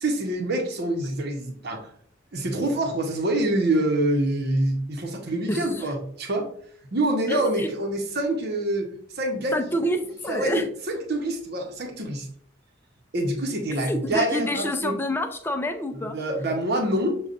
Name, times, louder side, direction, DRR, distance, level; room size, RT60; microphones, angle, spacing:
voice 1, 0.0-1.9 2.3-6.5 6.9-8.9 9.1-9.8 10.3-12.3 13.1-15.0 15.9-17.2, right 1 dB, 55° right, 2 dB, 0.8 m, -26 dB
voice 2, 7.3-7.7 9.5-10.6 13.9-16.2, left 1 dB, 10° left, 6 dB, 0.4 m, -27 dB
6.6 x 2.3 x 2.5 m, 0.63 s
head